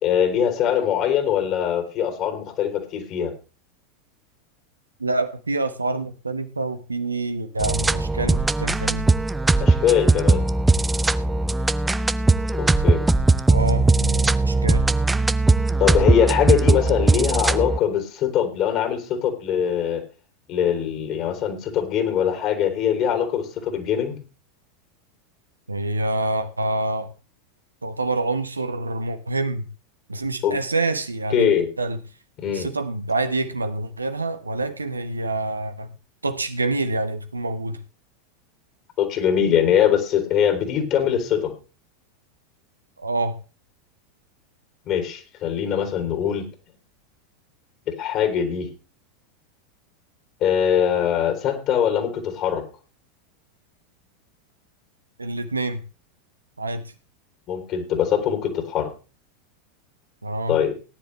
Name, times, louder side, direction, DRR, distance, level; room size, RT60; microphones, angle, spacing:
voice 1, 0.0-3.3 9.6-10.4 12.5-13.0 15.8-20.0 20.5-24.2 30.4-30.6 31.3-31.7 32.4-32.7 39.0-41.5 44.9-46.5 47.9-48.7 50.4-52.6 57.5-58.9 60.5-60.7, left 9 dB, 40° left, 6 dB, 3.2 m, -22 dB
voice 2, 5.0-9.1 13.5-14.8 25.7-27.1 27.8-29.7 30.1-32.0 32.5-35.9 36.2-37.8 43.0-43.4 55.2-55.8 56.6-56.8 60.2-60.6, right 2 dB, 80° right, 10 dB, 1.1 m, -26 dB
sound 1, 7.6-17.8, right 3 dB, 10° right, 0.6 m, -19 dB
18.0 x 10.0 x 3.2 m, 0.33 s
figure-of-eight pair, 85°, 0 cm